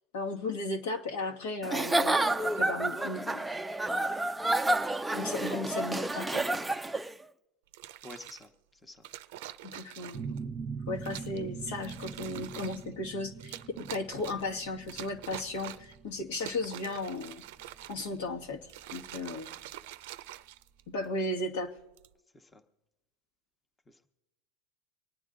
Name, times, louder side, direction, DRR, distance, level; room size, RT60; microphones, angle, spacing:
voice 1, 0.1-3.4 5.1-6.4 9.6-10.3 10.9-17.4 17.9-19.5 20.9-21.7, left 2 dB, 75° left, 2 dB, 1.7 m, -35 dB
Giggle / Chuckle chortle, 1.6-7.1, right 2 dB, 5° right, 0.5 m, -29 dB
sound 1, 7.7-8.5 9.0-10.4 11.0-11.4 11.8-12.9 13.4-14.5 14.9-16.0 16.3-18.2 18.6-21.0 21.8-22.1, right 14 dB, 70° right, 0.5 m, -45 dB
voice 2, 8.0-9.1 12.2-12.4 22.3-22.6 23.9-24.0, left 1 dB, 15° left, 6 dB, 1.1 m, -50 dB
sound 2, 10.1-19.5, right 5 dB, 25° right, 1.0 m, -43 dB
25.0 x 9.3 x 3.9 m, 0.97 s
supercardioid pair, 120°, 0 cm